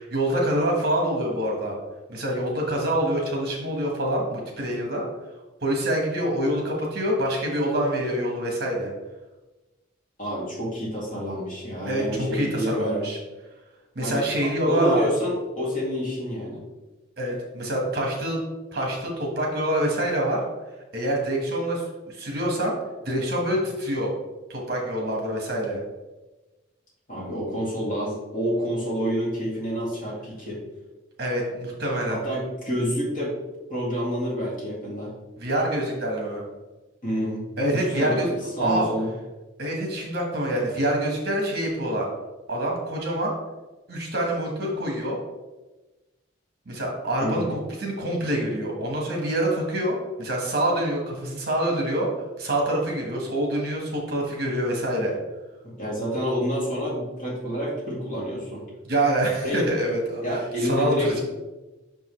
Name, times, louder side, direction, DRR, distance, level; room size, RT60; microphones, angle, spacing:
voice 1, 0.0-1.7 2.1-5.0 5.6-8.9 11.9-13.2 13.9-15.1 17.2-18.4 18.7-20.4 20.9-22.7 23.0-24.1 24.5-25.8 31.2-32.2 35.4-36.4 37.6-38.3 38.6-38.9 39.6-42.1 42.5-43.3 43.9-45.2 46.6-52.1 52.4-55.1 58.8-61.2, right 1 dB, 50° right, -1 dB, 1.5 m, -26 dB
voice 2, 10.2-13.0 14.0-16.6 27.1-30.6 32.1-33.3 33.7-35.1 37.0-39.1 47.2-47.6 55.6-58.6 59.4-59.7 60.2-61.2, equal, 45° left, -5 dB, 2.2 m, -28 dB
5.9 x 5.4 x 3.2 m, 1.1 s
head